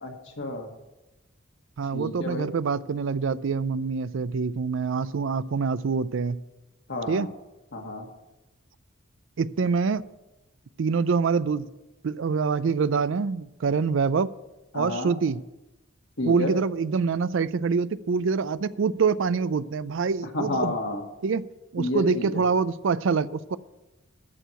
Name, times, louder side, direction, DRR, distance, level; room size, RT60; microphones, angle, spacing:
voice 1, 0.0-0.7 1.9-2.5 6.9-7.3 7.7-8.1 14.7-15.1 16.2-16.5 20.3-21.0 21.8-22.4, left 1 dB, 65° left, 2 dB, 1.9 m, -30 dB
voice 2, 1.8-6.4 7.1-7.3 9.4-10.0 10.8-11.7 12.0-14.3 14.7-15.4 16.3-20.7 21.2-21.5 21.7-23.6, right 5 dB, 70° right, 17 dB, 0.4 m, -25 dB
13.5 x 4.6 x 8.9 m, 1.0 s
head